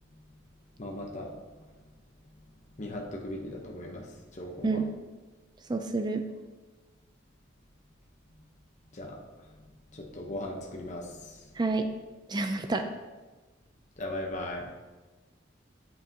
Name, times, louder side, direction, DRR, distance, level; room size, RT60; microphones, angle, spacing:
voice 1, 0.8-1.3 2.8-4.8 8.9-9.2 9.9-11.5 14.0-14.6, left 1 dB, 35° left, 0 dB, 0.8 m, -38 dB
voice 2, 5.7-6.3 11.6-11.9 12.3-12.9, right 3 dB, 20° right, 7 dB, 0.4 m, -28 dB
8.4 x 7.3 x 2.8 m, 1.2 s
head